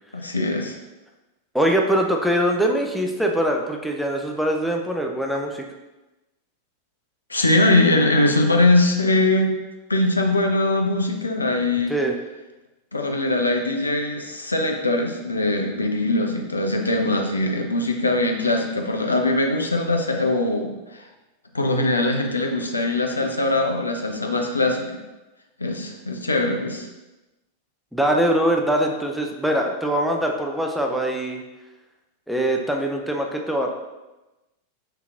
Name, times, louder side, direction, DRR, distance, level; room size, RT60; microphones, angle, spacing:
voice 1, 0.1-0.8 7.3-9.5 9.9-11.9 12.9-21.1 21.5-24.9 25.6-26.9, left 2 dB, 80° left, 3 dB, 0.5 m, -21 dB
voice 2, 1.5-5.6 11.9-12.1 27.9-31.4 32.3-33.7, right 1 dB, ahead, 1 dB, 0.4 m, -22 dB
5.7 x 2.8 x 2.4 m, 1.1 s
figure-of-eight pair, 90°, 0 cm